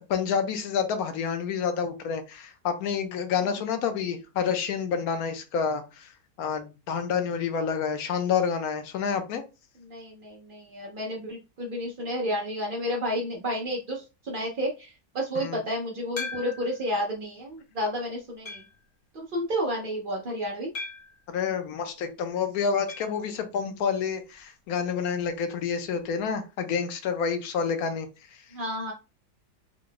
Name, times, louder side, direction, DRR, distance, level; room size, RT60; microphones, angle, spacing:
voice 1, 0.0-6.1 6.4-9.4 15.3-15.6 21.3-28.4, left 6 dB, 70° left, 1.1 m, -28 dB
voice 2, 9.8-18.6 19.1-20.7 28.5-28.9, equal, 75° right, 0.4 m, -31 dB
sound 1, 16.2-16.8 17.5-17.6 18.4-18.8 20.7-21.2 22.9-23.2 23.4-23.5 23.8-23.9 25.9-26.0, left 4 dB, 25° left, 0.6 m, -38 dB
3.6 x 2.2 x 3.7 m
omnidirectional pair, 1.8 m